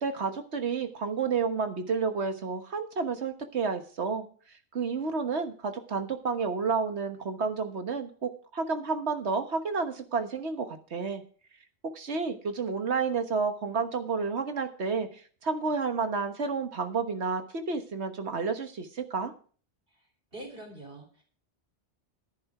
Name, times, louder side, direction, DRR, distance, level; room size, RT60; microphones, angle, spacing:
voice 1, 0.0-4.3 4.7-11.2 11.9-19.3, right 5 dB, 70° right, 7 dB, 1.6 m, -30 dB
voice 2, 20.3-21.2, right 1 dB, 55° right, 2 dB, 3.8 m, -44 dB
11.5 x 10.5 x 4.8 m, 0.41 s
omnidirectional pair, 1.2 m